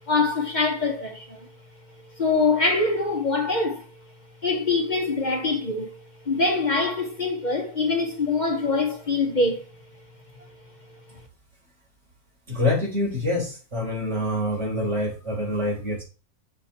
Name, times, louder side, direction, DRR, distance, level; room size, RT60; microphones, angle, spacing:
voice 1, 0.1-1.5 2.1-3.9 4.4-9.7, left 3 dB, 35° left, 1.1 m, -24 dB
voice 2, 12.5-16.0, left 1 dB, 50° right, 4.0 m, -26 dB
7.7 x 5.0 x 4.2 m
omnidirectional pair, 1.6 m